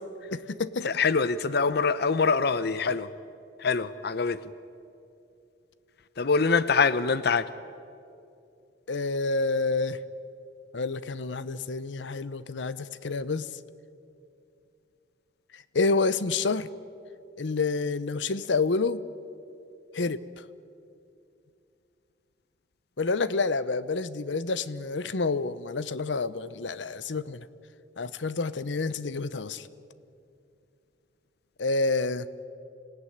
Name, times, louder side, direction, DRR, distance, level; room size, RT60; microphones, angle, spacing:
voice 1, 0.3-1.0 8.9-10.0 10.7-13.5 15.7-16.7 17.4-19.0 19.9-20.2 23.0-27.5 28.0-29.7 31.6-32.3, left 3 dB, 90° left, 16 dB, 0.8 m, -28 dB
voice 2, 1.0-3.1 3.6-4.4 6.2-7.4, left 4 dB, 60° left, 15 dB, 0.6 m, -24 dB
26.0 x 17.0 x 10.0 m, 2.6 s
head